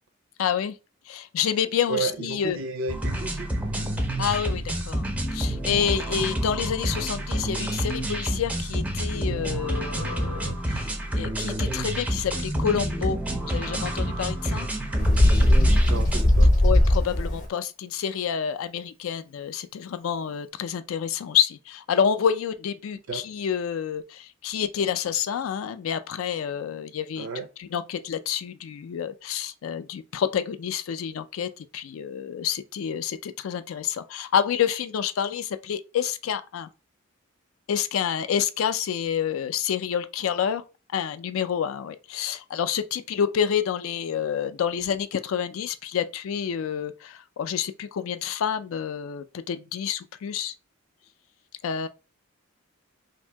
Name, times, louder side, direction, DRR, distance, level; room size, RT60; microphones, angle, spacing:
voice 1, 0.4-0.7 1.1-2.6 4.2-10.9 11.1-14.7 16.6-27.3 27.6-36.7 37.7-40.6 40.9-50.5 51.6-51.9, left 8 dB, 75° left, 0.3 m, -28 dB
voice 2, 1.9-3.5 15.8-16.5 23.1-23.2 27.2-27.5, right 4 dB, 70° right, 0.5 m, -32 dB
sound 1, 2.9-16.2, right 1 dB, 5° right, 0.4 m, -28 dB
Bird, 15.0-17.4, left 1 dB, 40° left, 0.7 m, -18 dB
2.7 x 2.7 x 3.3 m
head